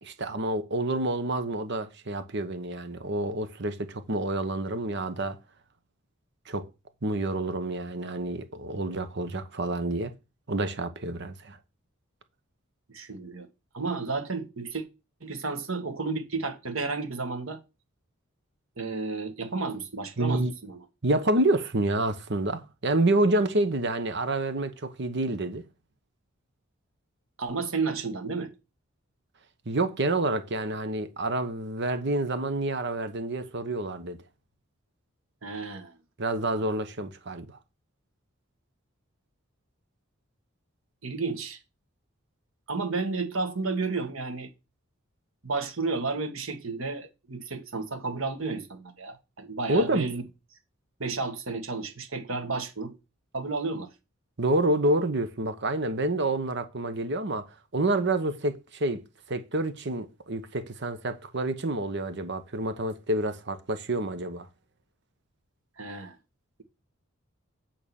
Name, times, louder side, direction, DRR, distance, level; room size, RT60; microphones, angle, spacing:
voice 1, 0.0-5.4 6.5-6.7 7.0-10.1 10.5-11.6 20.2-20.5 21.0-25.6 29.7-34.2 36.2-37.6 49.7-50.1 54.4-64.5, right 2 dB, 60° right, 1.1 m, -28 dB
voice 2, 12.9-13.5 13.7-14.8 15.2-17.6 18.8-20.8 27.4-28.5 35.4-36.0 36.6-36.7 41.0-41.6 42.7-44.5 45.4-50.2 51.0-53.0 53.3-53.9 65.8-66.2, right 3 dB, 80° right, 1.7 m, -32 dB
8.8 x 3.9 x 7.1 m
head